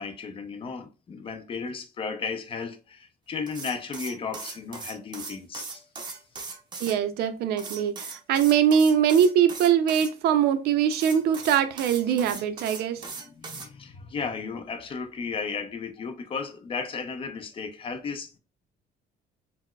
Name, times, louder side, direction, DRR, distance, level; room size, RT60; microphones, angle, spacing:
voice 1, 0.0-5.8 13.0-18.4, left 5 dB, 30° left, 0.5 m, -35 dB
sound 1, 3.5-7.0 7.6-10.1 10.9-13.7, right 4 dB, 25° right, 0.6 m, -39 dB
voice 2, 6.8-13.0, right 8 dB, 70° right, 0.4 m, -22 dB
4.4 x 2.0 x 2.2 m
cardioid pair, 110°, 17 cm